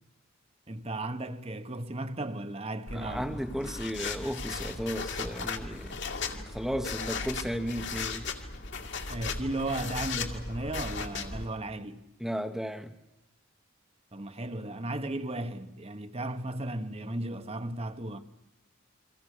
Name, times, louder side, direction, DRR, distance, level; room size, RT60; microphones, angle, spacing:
voice 1, 0.7-3.7 9.1-12.1 14.1-18.2, right 1 dB, 30° right, 1.3 m, -35 dB
sound 1, 2.9-11.5, left 4 dB, 55° left, 2.4 m, -37 dB
voice 2, 2.9-6.0 6.5-8.3 12.2-12.9, equal, ahead, 1.1 m, -34 dB
29.5 x 24.0 x 6.7 m
head